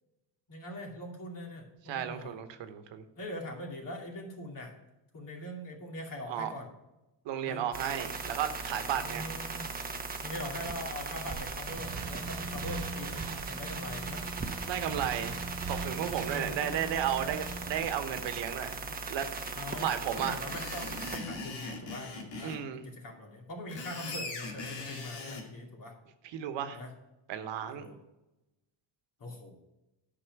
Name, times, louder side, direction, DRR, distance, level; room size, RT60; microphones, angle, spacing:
voice 1, 0.5-2.4 3.2-4.7 5.1-6.7 7.5-7.7 8.9-9.7 10.2-14.3 16.3-16.8 17.1-17.3 19.5-19.9 20.2-22.5 22.8-25.9 26.7-26.9 27.7-28.0 29.2-29.6, left 1 dB, 45° left, 0 dB, 2.6 m, -42 dB
voice 2, 1.9-3.0 6.3-6.5 7.2-9.3 14.6-15.4 15.7-18.8 19.1-19.3 19.8-20.3 22.4-22.8 26.2-26.8 27.3-27.9, right 9 dB, 75° right, 8 dB, 1.1 m, -33 dB
sound 1, 7.7-21.2, right 4 dB, 20° right, 1.0 m, -39 dB
sound 2, 11.7-17.8, right 4 dB, 55° right, 1.1 m, -41 dB
Screech, 20.1-22.6 23.5-25.4, left 3 dB, 80° left, 2.2 m, -40 dB
10.0 x 5.8 x 5.9 m, 0.99 s
cardioid pair, 125°, 44 cm